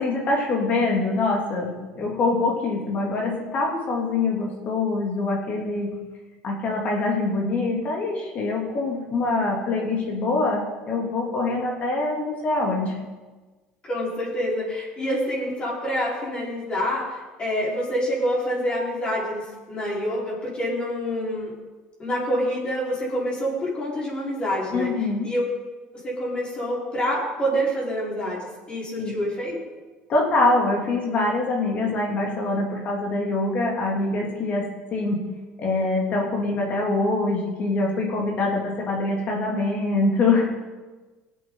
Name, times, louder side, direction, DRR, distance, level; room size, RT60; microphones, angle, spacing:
voice 1, 0.0-5.9 6.4-12.9 24.7-25.3 29.0-29.1 30.1-35.3 35.6-40.4, left 2 dB, 45° left, -1 dB, 3.0 m, -24 dB
voice 2, 13.8-21.5 22.0-24.9 25.2-25.5 25.9-29.6, equal, 30° left, -5 dB, 4.6 m, -27 dB
18.0 x 8.4 x 4.0 m, 1.2 s
supercardioid pair, 105°, 3 cm